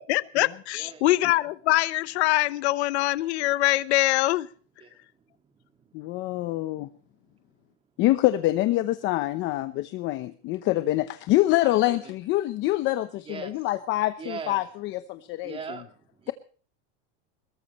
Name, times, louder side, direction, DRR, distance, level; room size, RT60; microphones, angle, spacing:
voice 1, 0.0-4.5, left 17 dB, 75° left, 1.0 m, -23 dB
voice 2, 0.7-1.2 4.8-5.0 5.8-5.9 11.6-12.1 13.3-13.7 14.2-14.6 15.4-16.3, right 5 dB, 15° right, 2.1 m, -40 dB
voice 3, 5.9-6.9 8.0-15.6, left 16 dB, 35° left, 0.9 m, -25 dB
21.5 x 18.5 x 3.1 m
supercardioid pair, 165°, 33 cm